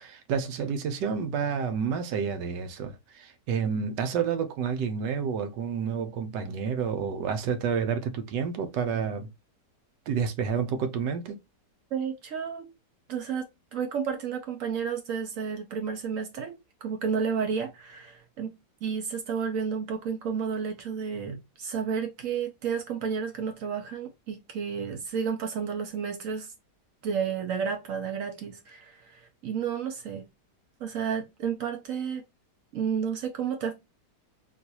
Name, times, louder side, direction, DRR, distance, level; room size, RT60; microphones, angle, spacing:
voice 1, 0.0-9.3 10.1-11.4, right 6 dB, 85° right, 1.3 m, -29 dB
voice 2, 11.9-12.7 13.1-16.5 16.8-18.5 18.8-26.5 27.0-30.3 30.8-32.2 32.7-33.7, right 6 dB, 65° right, 0.9 m, -31 dB
3.8 x 2.5 x 2.8 m
omnidirectional pair, 1.8 m